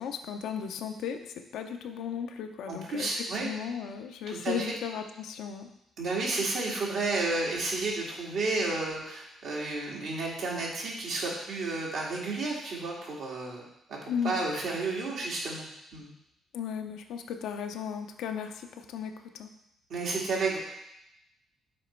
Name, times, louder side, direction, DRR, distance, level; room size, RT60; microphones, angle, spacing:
voice 1, 0.0-5.7 14.1-14.4 16.5-19.5, left 7 dB, 85° left, 6 dB, 0.5 m, -36 dB
voice 2, 2.7-3.5 4.3-4.7 6.0-13.6 13.9-14.0 14.2-16.1 19.9-20.6, right 3 dB, 70° right, -3 dB, 1.9 m, -31 dB
7.5 x 3.1 x 4.4 m, 0.82 s
cardioid pair, 90°, 0 cm